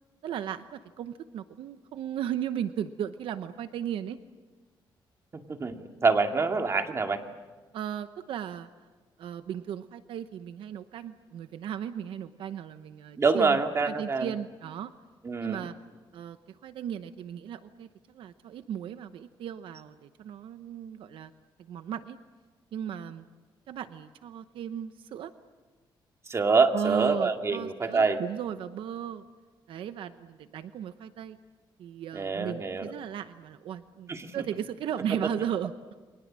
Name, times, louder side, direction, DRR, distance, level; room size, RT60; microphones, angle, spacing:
voice 1, 0.2-4.2 7.7-8.7 9.2-13.6 13.8-14.9 15.4-15.7 16.1-16.4 16.6-17.9 18.1-21.3 21.7-22.2 22.7-23.2 23.7-25.3 26.7-29.2 29.7-31.4 31.8-35.7, right 9 dB, 80° right, 10 dB, 0.9 m, -36 dB
voice 2, 5.3-7.2 13.2-14.3 15.2-15.7 26.3-28.2 32.1-32.9 34.1-34.4, right 4 dB, 35° right, 4 dB, 2.3 m, -26 dB
29.5 x 24.0 x 7.6 m, 1.3 s
cardioid pair, 110°, 9 cm